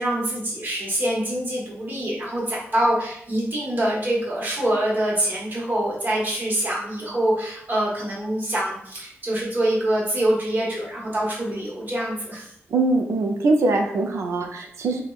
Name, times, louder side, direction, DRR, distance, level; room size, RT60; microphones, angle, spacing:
voice 1, 0.0-12.5, right 1 dB, 45° right, -5 dB, 1.0 m, -25 dB
voice 2, 12.7-15.0, right 2 dB, 85° right, 3 dB, 0.4 m, -22 dB
3.4 x 2.1 x 2.3 m, 0.70 s
wide cardioid pair, 130°, 5 cm